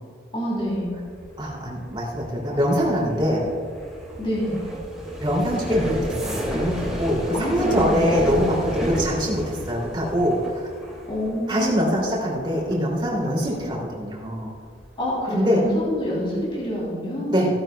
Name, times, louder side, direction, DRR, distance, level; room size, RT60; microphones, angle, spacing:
voice 1, 0.3-1.0 4.2-4.6 7.3-8.3 11.1-12.0 15.0-17.4, equal, 30° left, -6 dB, 3.0 m, -27 dB
sound 1, 0.6-15.2 15.5-16.0 16.2-16.6, equal, 5° right, 2.3 m, -32 dB
voice 2, 1.4-3.5 5.2-10.7 11.5-14.5 15.3-15.6 17.3-17.5, equal, 25° right, -3 dB, 2.6 m, -23 dB
16.0 x 11.0 x 2.2 m, 2.1 s
head